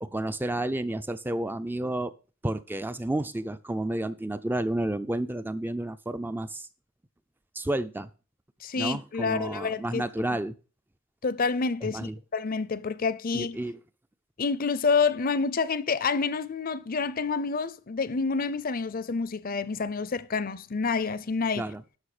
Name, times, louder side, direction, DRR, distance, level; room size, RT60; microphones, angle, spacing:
voice 1, 0.0-2.1 2.4-6.7 7.6-8.1 8.8-10.6 11.9-12.1 13.3-13.8 21.6-21.8, right 1 dB, 10° right, 0.4 m, -31 dB
voice 2, 8.6-10.0 11.2-13.6 14.4-21.7, left 4 dB, 40° left, 0.5 m, -28 dB
11.5 x 6.3 x 4.9 m
head